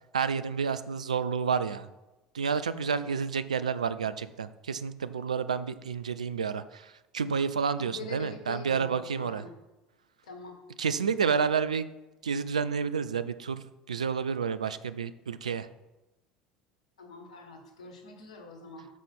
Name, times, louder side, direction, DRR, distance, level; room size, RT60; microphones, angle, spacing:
voice 1, 0.1-1.9 2.3-9.4 10.8-11.9 12.2-15.7, right 6 dB, 75° right, 13 dB, 0.4 m, -30 dB
voice 2, 7.8-9.5 10.2-10.6 17.0-18.9, left 3 dB, 70° left, 4 dB, 1.4 m, -44 dB
6.3 x 5.6 x 5.4 m, 1.0 s
figure-of-eight pair, 70°, 4 cm